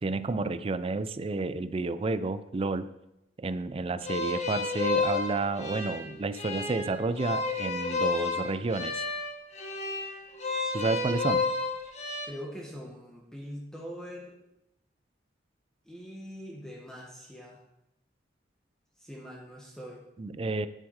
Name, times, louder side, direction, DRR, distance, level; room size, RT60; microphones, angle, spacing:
voice 1, 0.0-2.9 3.4-9.0 10.7-11.5 20.2-20.7, right 3 dB, 30° right, 14 dB, 0.4 m, -30 dB
sound 1, 4.0-12.3, left 3 dB, 40° left, 1.4 m, -31 dB
voice 2, 12.2-14.4 15.8-17.6 19.0-20.1, equal, 5° left, -2 dB, 1.5 m, -43 dB
9.3 x 7.1 x 4.8 m, 0.85 s
head